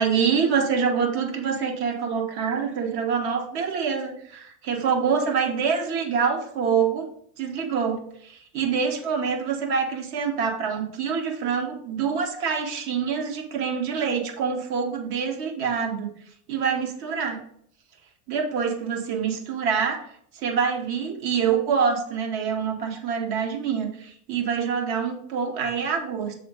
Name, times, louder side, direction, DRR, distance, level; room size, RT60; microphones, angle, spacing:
voice 1, 0.0-7.1 7.4-16.1 16.5-17.4 18.3-20.0 20.3-26.3, right 6 dB, 60° right, 3 dB, 1.4 m, -26 dB
7.0 x 3.6 x 3.7 m, 0.65 s
supercardioid pair, 95°, 44 cm